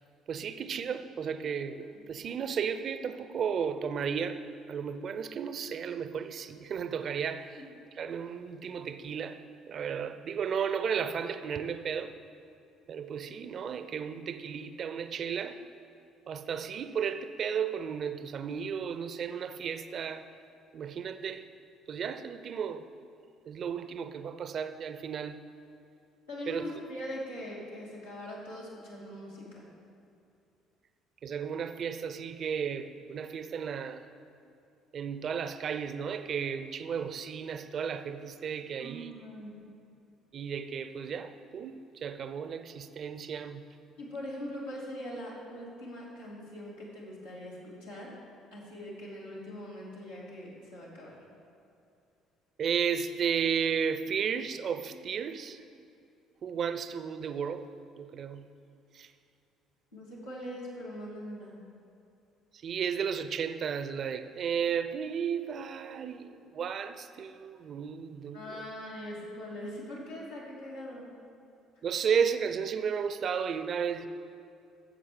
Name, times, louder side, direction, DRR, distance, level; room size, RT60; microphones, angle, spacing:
voice 1, 0.3-4.4 4.7-7.6 8.0-9.4 9.7-12.1 12.9-15.6 16.3-20.2 20.7-21.4 21.9-22.9 23.5-25.4 26.5-26.6 31.2-34.0 34.9-39.1 40.3-43.6 52.6-55.6 56.4-57.6 58.0-58.5 58.9-59.1 62.5-68.6 71.8-74.1, right 7 dB, 50° right, 11 dB, 0.6 m, -33 dB
voice 2, 26.3-29.7 38.8-39.6 44.0-48.1 48.5-51.2 59.9-61.5 68.3-71.1, equal, 90° left, -8 dB, 2.8 m, -42 dB
12.5 x 7.4 x 5.0 m, 2.6 s
hypercardioid pair, 55°, 0 cm